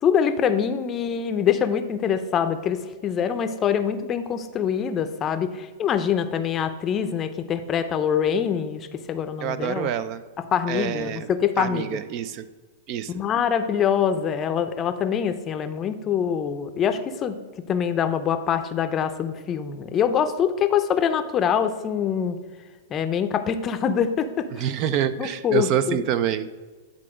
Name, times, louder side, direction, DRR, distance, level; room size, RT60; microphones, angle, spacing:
voice 1, 0.0-9.9 10.5-11.9 13.1-17.4 17.7-22.4 22.9-24.7 25.2-26.0, left 8 dB, 25° left, 9 dB, 0.5 m, -24 dB
voice 2, 9.4-10.2 10.7-11.3 11.6-12.5 12.9-13.1 24.5-26.5, right 10 dB, 45° right, 14 dB, 0.4 m, -26 dB
9.8 x 3.8 x 5.0 m, 1.3 s
hypercardioid pair, 135°, 0 cm